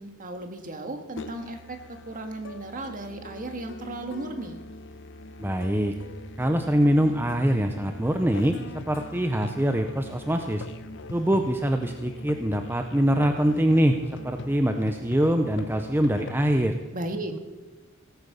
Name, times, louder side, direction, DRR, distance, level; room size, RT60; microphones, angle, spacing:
voice 1, 0.0-1.8 2.1-4.6 16.9-17.3, right 2 dB, 40° right, 5 dB, 1.7 m, -35 dB
Musical instrument, 1.2-16.7, left 2 dB, 60° left, 0.8 m, -42 dB
voice 2, 5.4-5.9 6.4-10.7 11.1-14.0 14.2-16.8, equal, 10° right, 5 dB, 0.7 m, -24 dB
17.5 x 8.6 x 6.8 m, 1.1 s
head